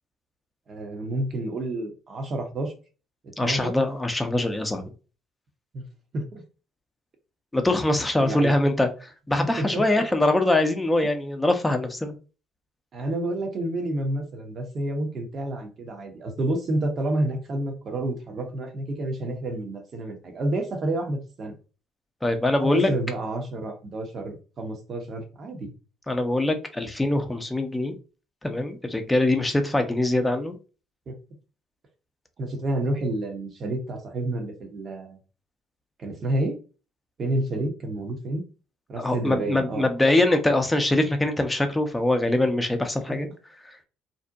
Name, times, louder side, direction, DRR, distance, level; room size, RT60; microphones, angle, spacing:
voice 1, 0.7-2.7 3.2-3.8 4.3-4.4 5.7-5.8 6.1-6.4 8.2-8.6 9.6-10.0 12.9-21.6 22.6-25.7 31.1-31.2 32.4-35.2 36.0-36.6 37.2-38.4 38.9-39.9 43.1-43.2, right 1 dB, 50° right, 4 dB, 0.8 m, -29 dB
voice 2, 3.4-4.8 7.5-12.1 22.2-22.9 26.1-27.9 28.4-30.6 39.0-43.3, left 1 dB, 10° left, 6 dB, 0.6 m, -23 dB
2.6 x 2.1 x 2.6 m, 0.35 s
hypercardioid pair, 55°, 0 cm